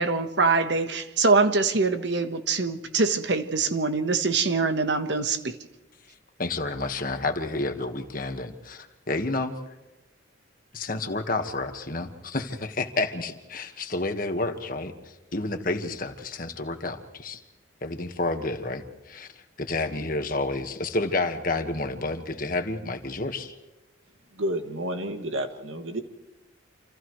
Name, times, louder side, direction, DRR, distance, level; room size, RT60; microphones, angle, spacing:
voice 1, 0.0-5.5, right 4 dB, 55° right, 1.3 m, -24 dB
voice 2, 6.4-9.6 10.7-17.4 17.8-19.3 19.6-23.5, left 2 dB, 45° left, 1.6 m, -30 dB
voice 3, 24.3-26.0, right 1 dB, 80° right, 2.1 m, -30 dB
29.0 x 28.0 x 3.2 m
head